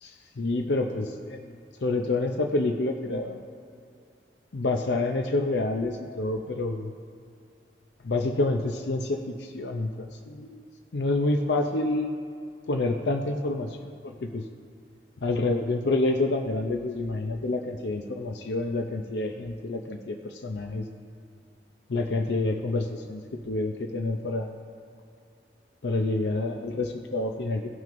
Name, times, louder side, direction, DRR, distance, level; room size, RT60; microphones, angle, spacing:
voice 1, 0.0-1.4 1.8-3.4 4.5-6.9 8.0-10.6 10.9-12.1 12.7-13.7 14.0-14.4 15.2-20.8 21.9-24.5 25.8-27.7, left 2 dB, 70° left, 4 dB, 0.5 m, -28 dB
18.0 x 6.2 x 2.6 m, 2.4 s
head